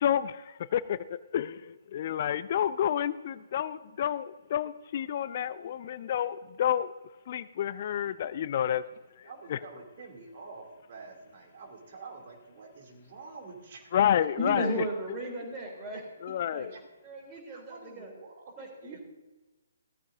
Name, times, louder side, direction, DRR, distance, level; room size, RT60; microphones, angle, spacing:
voice 1, 0.0-6.9 7.3-8.8 9.2-9.6 13.9-14.8 16.2-16.7, left 10 dB, 40° left, 16 dB, 0.4 m, -29 dB
voice 2, 9.2-13.9 16.7-16.8 17.5-19.0, right 4 dB, 40° right, 2 dB, 2.9 m, -48 dB
voice 3, 14.4-16.0 16.5-16.7 17.0-18.1 18.6-19.0, right 1 dB, 20° right, 0 dB, 3.7 m, -35 dB
17.5 x 14.0 x 2.7 m, 1.2 s
figure-of-eight pair, 135°, 0 cm